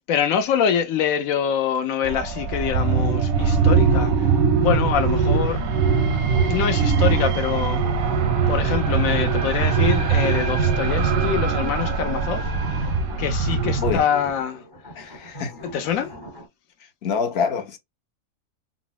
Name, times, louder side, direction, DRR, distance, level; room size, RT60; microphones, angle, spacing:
voice 1, 0.0-4.3 4.6-5.6 6.5-7.8 8.5-12.5 12.8-12.9 13.2-14.6 15.6-16.1, left 8 dB, 75° left, 1.1 m, -25 dB
sound 1, 2.0-14.0, right 5 dB, 85° right, 1.1 m, -21 dB
sound 2, 3.9-16.5, right 1 dB, 25° left, 0.7 m, -39 dB
voice 2, 15.0-15.5 17.0-17.8, left 6 dB, 55° left, 0.8 m, -25 dB
3.7 x 2.0 x 2.3 m
omnidirectional pair, 1.5 m